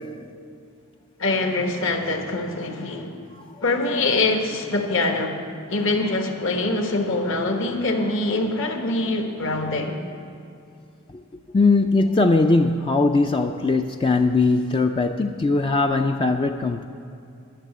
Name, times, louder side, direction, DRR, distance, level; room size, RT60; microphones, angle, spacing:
voice 1, 1.2-3.2 3.6-5.4 5.7-10.0, left 2 dB, 60° left, 4 dB, 1.3 m, -24 dB
voice 2, 11.5-16.9, left 3 dB, 25° left, 5 dB, 0.3 m, -20 dB
12.0 x 6.7 x 9.2 m, 2.6 s
head